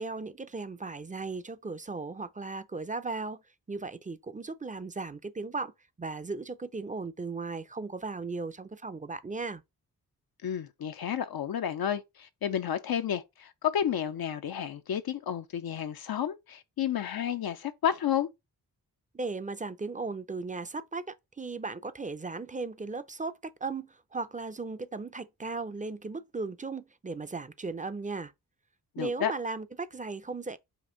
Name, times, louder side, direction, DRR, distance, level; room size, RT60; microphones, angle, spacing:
voice 1, 0.0-3.4 3.7-5.7 6.0-9.6 19.1-28.3 29.0-30.6, right 3 dB, 20° right, 0.5 m, -36 dB
voice 2, 10.4-18.3 29.0-29.3, left 9 dB, 65° left, 0.6 m, -31 dB
5.2 x 2.5 x 3.7 m
cardioid pair, 45°, 39 cm